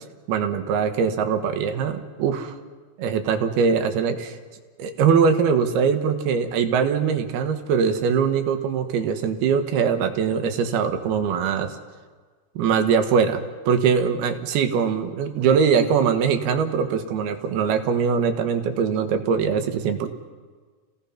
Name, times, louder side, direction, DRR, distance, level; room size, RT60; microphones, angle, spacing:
voice 1, 0.3-2.5 3.0-4.4 4.8-11.7 12.6-20.1, right 6 dB, 90° right, 7 dB, 3.3 m, -22 dB
29.5 x 17.5 x 5.8 m, 1.5 s
omnidirectional pair, 4.4 m